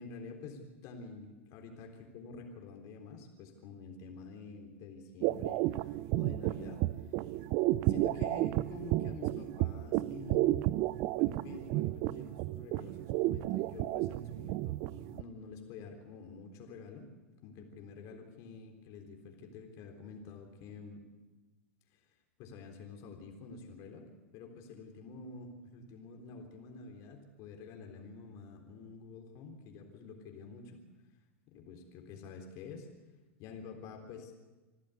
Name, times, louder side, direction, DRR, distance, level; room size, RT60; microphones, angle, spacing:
voice 1, 0.0-7.1 7.9-10.8 11.2-17.1 17.4-21.0 21.9-22.0 22.4-24.1 24.3-30.8 31.5-32.9 33.4-34.4, left 4 dB, 50° left, 3 dB, 3.7 m, -48 dB
sound 1, 5.2-15.2, right 17 dB, 50° right, 0.7 m, -32 dB
26.5 x 13.5 x 8.3 m, 1.2 s
hypercardioid pair, 100°, 7 cm